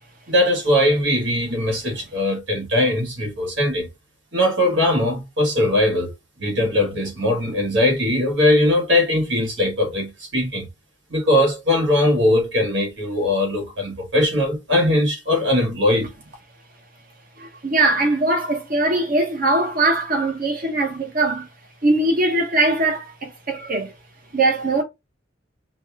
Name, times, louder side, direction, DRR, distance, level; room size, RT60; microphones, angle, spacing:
voice 1, 0.3-3.9 4.3-6.1 6.4-10.7 11.1-16.1, left 1 dB, 70° right, 1.6 m, -20 dB
voice 2, 17.4-21.5 21.8-23.9 24.3-24.8, right 2 dB, 50° right, 1.2 m, -21 dB
5.3 x 2.4 x 3.4 m
head